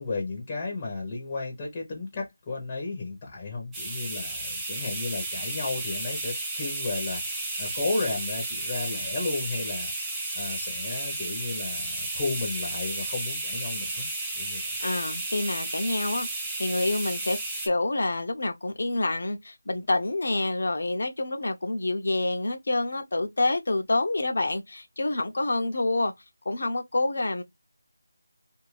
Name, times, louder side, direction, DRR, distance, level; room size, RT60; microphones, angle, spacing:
voice 1, 0.0-14.1 14.3-14.8, left 3 dB, 15° left, 0.8 m, -33 dB
sound 1, 3.7-17.7, right 2 dB, 5° right, 0.4 m, -33 dB
voice 2, 14.8-17.4 17.7-26.1 26.4-27.4, left 2 dB, 55° left, 0.7 m, -27 dB
2.6 x 2.5 x 3.1 m
figure-of-eight pair, 170°, 0 cm